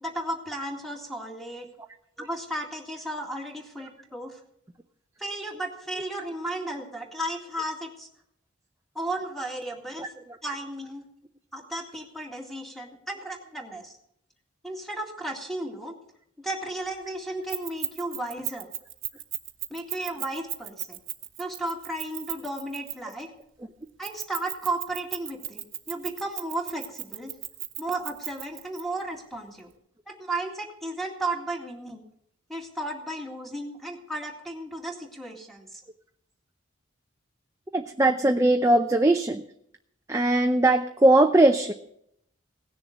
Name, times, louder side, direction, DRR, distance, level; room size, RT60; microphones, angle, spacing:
voice 1, 0.0-1.7 2.2-4.4 5.2-8.1 9.0-10.1 10.4-11.0 11.5-14.0 14.6-15.9 16.4-18.7 19.7-21.0 21.4-23.3 24.0-27.3 27.8-29.7 30.1-32.0 32.5-35.8, right 1 dB, ahead, 2 dB, 2.1 m, -34 dB
Keys jangling, 17.5-23.2 24.0-28.8, right 15 dB, 75° right, 1.1 m, -35 dB
voice 2, 37.7-39.4 40.1-41.7, right 2 dB, 15° right, 5 dB, 0.5 m, -20 dB
17.5 x 6.9 x 8.4 m, 0.73 s
head